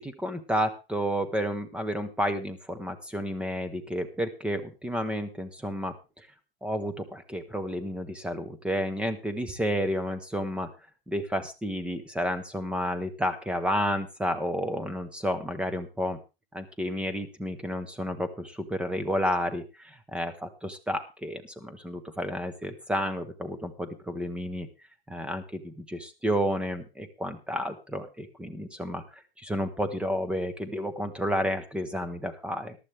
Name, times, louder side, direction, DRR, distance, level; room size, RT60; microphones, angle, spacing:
voice 1, 0.0-6.3 6.6-10.7 11.1-16.2 16.5-24.7 25.1-29.0 29.4-32.8, equal, 5° right, 11 dB, 0.9 m, -31 dB
14.5 x 11.5 x 3.3 m, 0.29 s
supercardioid pair, 155°, 30 cm